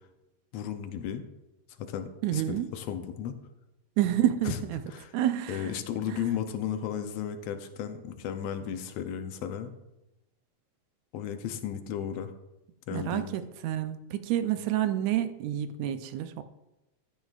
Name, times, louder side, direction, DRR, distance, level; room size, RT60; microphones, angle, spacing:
voice 1, 0.5-1.2 1.8-3.4 4.4-4.6 4.9-5.1 5.5-9.7 11.1-12.3 12.9-13.3, left 9 dB, 75° left, 8 dB, 1.6 m, -34 dB
voice 2, 2.2-2.7 4.0-4.8 5.1-5.8 6.1-6.2 12.9-16.4, right 12 dB, 80° right, 10 dB, 1.8 m, -29 dB
14.5 x 9.5 x 2.4 m, 0.95 s
omnidirectional pair, 3.4 m